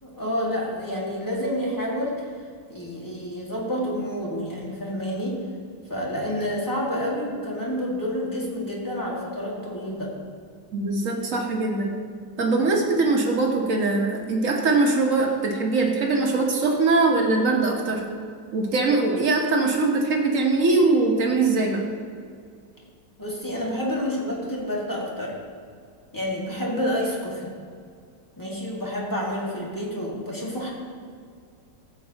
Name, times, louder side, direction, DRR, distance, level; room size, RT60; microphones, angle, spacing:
voice 1, 0.0-2.3 2.7-5.4 5.9-10.1 23.2-25.4 26.1-27.5 28.4-30.7, equal, 10° left, -4 dB, 1.7 m, -29 dB
voice 2, 10.7-11.9 12.4-18.0 18.5-21.8, right 3 dB, 50° right, 0 dB, 1.4 m, -22 dB
14.5 x 7.7 x 2.9 m, 2.1 s
omnidirectional pair, 1.9 m